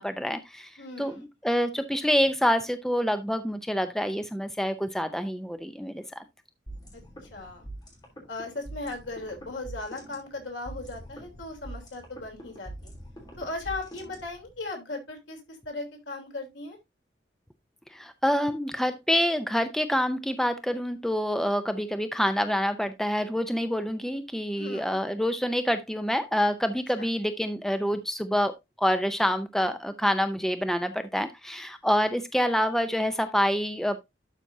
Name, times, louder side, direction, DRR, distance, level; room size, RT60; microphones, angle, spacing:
voice 1, 0.0-6.2 17.9-34.1, equal, ahead, 0.5 m, -27 dB
voice 2, 0.8-1.2 7.2-7.6 8.3-12.9 13.4-16.8 24.6-24.9 27.0-27.1, left 2 dB, 85° left, 3.4 m, -37 dB
sound 1, 6.7-14.6, right 1 dB, 20° left, 3.1 m, -44 dB
12.0 x 5.8 x 2.7 m
head